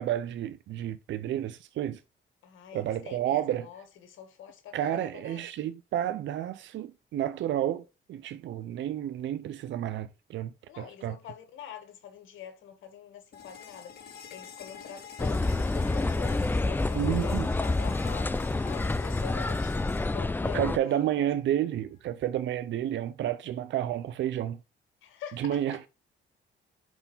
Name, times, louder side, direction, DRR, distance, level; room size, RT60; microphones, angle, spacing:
voice 1, 0.0-2.0 2.7-3.7 4.7-11.2 16.9-17.5 20.5-24.6 25.4-25.8, right 11 dB, 70° right, 0.6 m, -31 dB
voice 2, 2.4-5.4 10.7-21.3 25.0-25.9, left 9 dB, 80° left, 1.8 m, -45 dB
sound 1, 13.3-21.3, left 7 dB, 55° left, 1.9 m, -48 dB
sound 2, 15.2-20.8, left 2 dB, 10° left, 0.3 m, -28 dB
5.3 x 4.7 x 5.5 m
cardioid pair, 90°, 20 cm